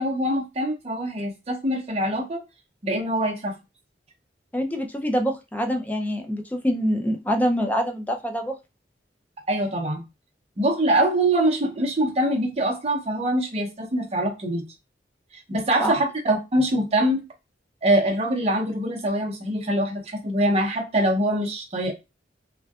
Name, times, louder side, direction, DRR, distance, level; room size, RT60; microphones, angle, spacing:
voice 1, 0.0-2.4 2.8-3.5 9.5-10.0 10.6-14.6 15.3-17.2 17.8-21.9, right 1 dB, 35° right, 2 dB, 0.6 m, -24 dB
voice 2, 4.5-8.6 15.8-15.9, equal, 10° left, 4 dB, 0.3 m, -25 dB
2.6 x 2.2 x 2.3 m, 0.25 s
head